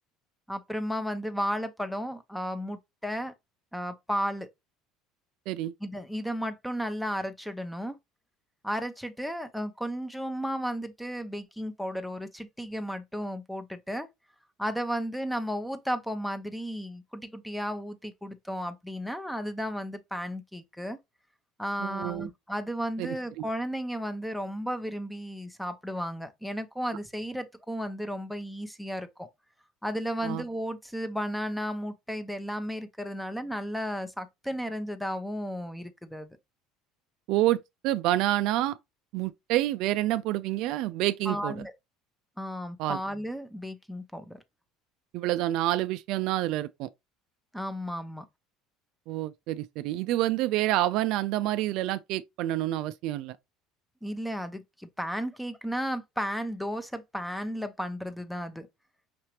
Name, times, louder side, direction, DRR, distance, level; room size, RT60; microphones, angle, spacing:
voice 1, 0.5-3.3 3.7-4.5 5.8-8.0 8.6-14.1 14.6-21.0 21.6-29.3 29.8-36.4 41.3-41.7 42.4-44.4 47.5-48.2 54.0-58.7, equal, ahead, 0.8 m, -34 dB
voice 2, 21.8-22.3 23.0-23.2 30.2-30.4 37.3-37.6 37.8-38.8 39.1-41.6 42.8-43.0 45.1-46.9 49.1-53.4, right 15 dB, 65° right, 0.4 m, -28 dB
5.9 x 2.8 x 3.1 m
supercardioid pair, 95°, 0 cm